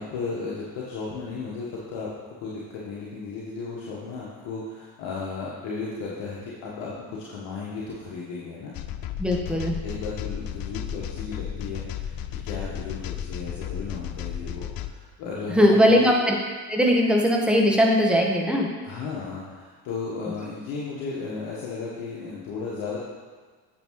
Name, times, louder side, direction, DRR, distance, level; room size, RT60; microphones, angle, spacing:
voice 1, 0.0-2.1 2.4-8.7 9.8-16.1 18.8-23.0, left 4 dB, 60° left, -5 dB, 1.5 m, -35 dB
sound 1, 8.7-14.9, left 10 dB, 45° left, 0.5 m, -34 dB
voice 2, 9.2-9.7 15.5-16.3 16.7-18.7, equal, ahead, -1 dB, 1.5 m, -19 dB
8.6 x 6.8 x 3.2 m, 1.4 s
figure-of-eight pair, 55°, 50 cm